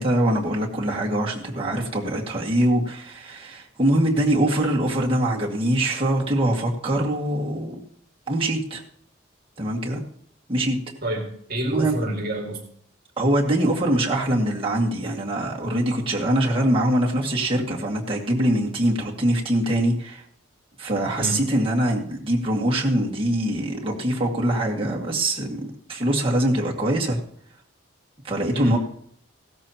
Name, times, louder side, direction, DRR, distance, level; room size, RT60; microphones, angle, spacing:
voice 1, 0.0-7.8 8.3-8.8 9.6-10.0 10.5-10.8 11.7-11.9 13.2-20.2 20.8-27.2 28.2-28.8, right 1 dB, 25° right, -3 dB, 2.0 m, -23 dB
voice 2, 11.0-12.7 21.2-21.5 28.5-28.8, right 1 dB, 45° right, 1 dB, 2.2 m, -27 dB
16.0 x 13.0 x 2.9 m, 0.64 s
head